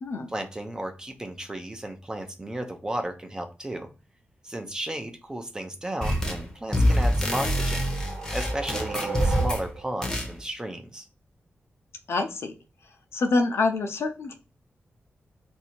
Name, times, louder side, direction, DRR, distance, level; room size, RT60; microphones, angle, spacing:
voice 1, 0.3-3.9 4.4-7.9 8.3-11.1, right 1 dB, 15° right, 5 dB, 0.5 m, -34 dB
sound 1, 6.0-6.5 6.7-9.7 10.0-10.3, equal, 15° left, 0.8 m, -25 dB
sound 2, 6.8-10.0, right 4 dB, 60° right, 1.1 m, -36 dB
voice 2, 12.1-12.5 13.1-14.3, left 3 dB, 80° left, 4 dB, 0.6 m, -26 dB
2.7 x 2.7 x 4.2 m, 0.33 s
wide cardioid pair, 130°, 4 cm